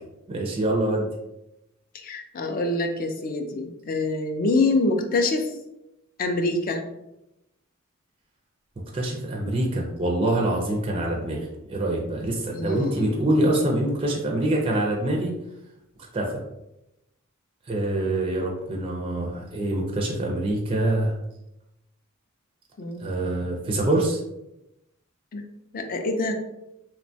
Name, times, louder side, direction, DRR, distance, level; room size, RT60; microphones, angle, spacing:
voice 1, 0.3-1.1 8.9-15.3 16.1-16.4 17.7-21.1 23.0-24.2, right 1 dB, 25° right, 0 dB, 0.4 m, -25 dB
voice 2, 1.9-5.5 6.2-6.8 12.5-13.2 22.8-23.1 25.3-25.4 25.7-26.3, left 2 dB, 40° left, 5 dB, 0.4 m, -25 dB
3.0 x 2.2 x 2.6 m, 0.89 s
head